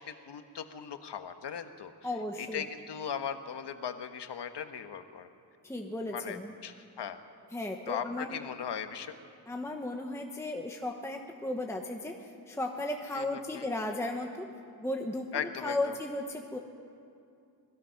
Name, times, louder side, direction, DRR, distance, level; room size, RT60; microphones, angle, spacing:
voice 1, 0.3-1.9 2.4-5.3 6.1-7.2 7.9-9.2 13.1-13.7 15.3-16.0, left 8 dB, 80° left, 8 dB, 1.3 m, -38 dB
voice 2, 2.0-2.7 5.6-6.5 7.5-8.4 9.5-14.5 14.8-16.6, left 1 dB, 5° left, 2 dB, 1.0 m, -35 dB
26.5 x 20.0 x 5.8 m, 2.6 s
wide cardioid pair, 165°, 41 cm